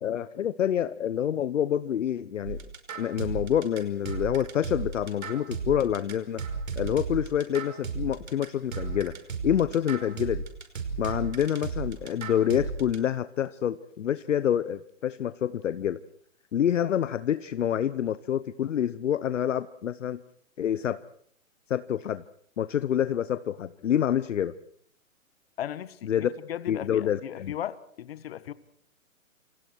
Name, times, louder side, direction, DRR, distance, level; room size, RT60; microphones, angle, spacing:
voice 1, 0.0-2.6 2.9-6.4 6.8-9.1 9.4-10.4 11.0-16.0 16.5-20.2 20.6-21.0 21.7-22.2 22.6-24.5 26.0-26.3 26.7-27.5, left 10 dB, 60° left, 14 dB, 1.0 m, -27 dB
sound 1, 2.4-13.0, right 4 dB, 75° right, 5.4 m, -34 dB
voice 2, 25.6-28.5, left 11 dB, 45° left, 15 dB, 1.5 m, -36 dB
28.0 x 28.0 x 4.7 m, 0.64 s
hypercardioid pair, 155°, 41 cm